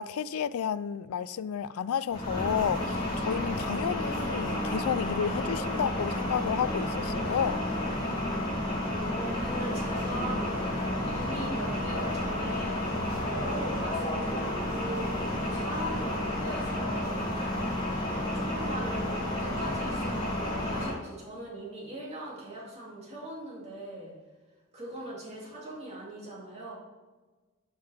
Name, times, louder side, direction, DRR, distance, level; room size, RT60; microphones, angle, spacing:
voice 1, 0.0-7.7, left 8 dB, 80° left, 0.4 m, -31 dB
sound 1, 2.1-20.9, left 1 dB, 25° left, 2.8 m, -31 dB
voice 2, 9.1-10.7 11.1-13.0 13.2-17.2 18.3-24.1 24.7-26.7, right 1 dB, 30° right, 2.6 m, -40 dB
11.0 x 5.7 x 3.5 m
head